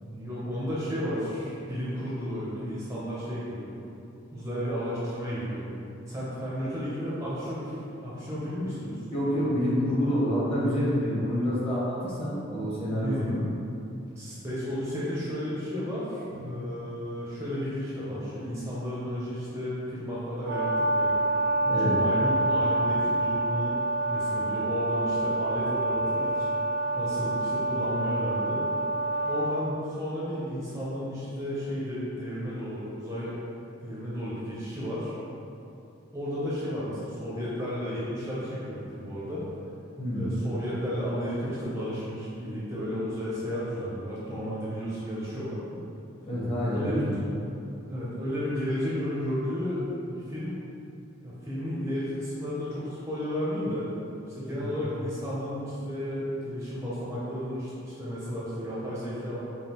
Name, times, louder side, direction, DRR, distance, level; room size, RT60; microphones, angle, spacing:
voice 1, 0.0-3.7 4.3-5.6 6.1-9.0 13.0-13.4 14.2-21.1 21.6-23.8 24.1-26.5 26.9-28.6 29.3-33.3 33.8-35.2 36.1-39.4 40.1-45.8 46.7-47.2 47.9-50.6 51.2-53.9 54.3-59.4, equal, 15° right, -9 dB, 0.6 m, -33 dB
voice 2, 9.1-13.4 16.3-16.5 21.6-21.9 40.0-40.2 46.2-47.2 54.5-54.7, equal, 30° left, -8 dB, 1.0 m, -28 dB
Brass instrument, 20.5-29.5, right 2 dB, 60° right, 0.5 m, -27 dB
5.1 x 2.4 x 2.9 m, 2.8 s
head